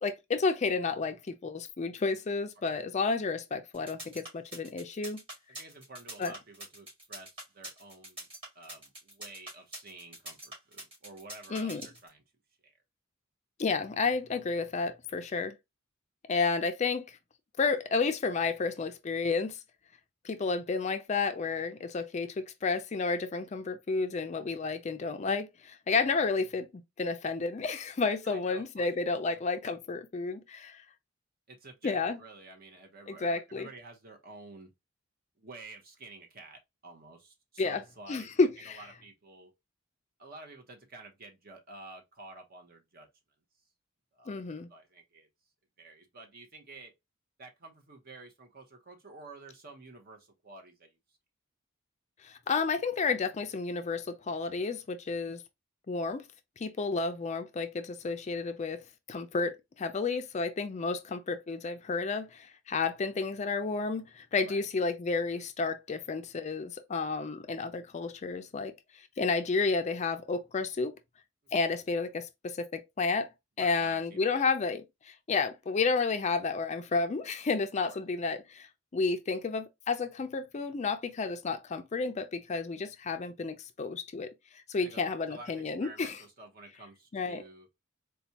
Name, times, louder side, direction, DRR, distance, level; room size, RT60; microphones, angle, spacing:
voice 1, 0.0-5.2 6.2-6.3 11.5-11.8 13.6-15.5 16.3-17.2 17.6-19.6 20.2-26.7 27.0-30.8 31.8-32.2 33.1-33.7 37.6-37.8 38.1-38.8 44.3-44.7 52.2-55.4 55.9-56.2 56.6-58.8 59.1-68.7 69.2-70.9 71.5-73.3 73.6-78.7 78.9-86.2 87.1-87.4, left 4 dB, 35° left, 0.4 m, -31 dB
sound 1, 3.7-12.1, right 1 dB, 30° right, 2.1 m, -44 dB
voice 2, 5.6-8.3 8.5-12.2 12.6-12.7 28.2-28.9 29.3-29.4 31.5-34.7 35.4-38.3 38.7-39.5 40.2-43.1 44.1-44.4 44.7-45.3 45.8-46.9 47.4-51.0 64.4-64.6 73.6-74.5 77.8-78.0 84.8-87.7, right 2 dB, 50° right, 0.9 m, -50 dB
4.2 x 2.2 x 2.7 m
head